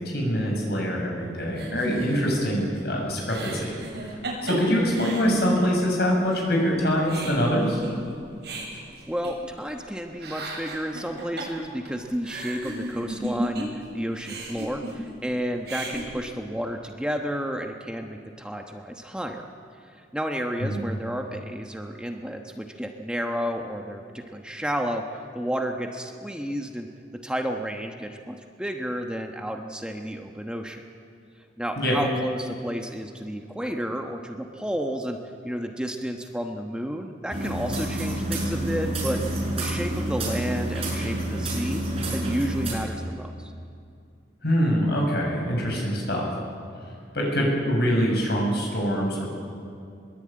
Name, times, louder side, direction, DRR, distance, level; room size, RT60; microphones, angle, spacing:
voice 1, 0.0-3.7 4.4-7.8 20.6-20.8 31.8-32.0 44.4-46.3 47.1-49.2, equal, 65° left, 0 dB, 7.2 m, -24 dB
sound 1, 1.5-6.0 6.3-6.4 6.7-9.8 10.1-13.9 14.1-15.3 15.6-16.0, right 2 dB, 70° right, 7.4 m, -36 dB
voice 2, 9.1-19.5 19.8-26.9 27.2-30.8 31.6-39.2 39.6-41.8 42.1-43.5, equal, 5° right, 3 dB, 1.1 m, -31 dB
sound 2, 37.3-42.7, right 1 dB, 35° right, 6.8 m, -28 dB
22.5 x 21.5 x 8.8 m, 2.5 s
head